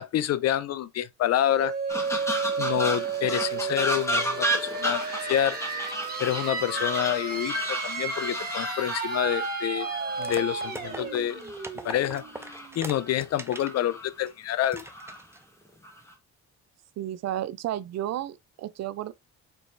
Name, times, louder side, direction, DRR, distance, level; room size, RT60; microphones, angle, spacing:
voice 1, 0.0-1.7 2.6-5.6 6.2-9.9 10.2-11.4 11.8-12.2 12.8-14.9, left 11 dB, 55° left, 0.4 m, -27 dB
sound 1, 1.5-13.0, right 5 dB, 30° right, 1.5 m, -33 dB
sound 2, 1.9-11.7 12.1-13.2 13.5-14.1 14.6-15.2 15.8-16.1, equal, 10° left, 1.2 m, -33 dB
sound 3, 10.2-13.8 14.2-14.3 14.7-15.4, right 2 dB, 10° right, 0.5 m, -41 dB
voice 2, 17.0-19.1, right 12 dB, 60° right, 0.4 m, -32 dB
4.7 x 3.0 x 2.5 m
cardioid pair, 90°, 30 cm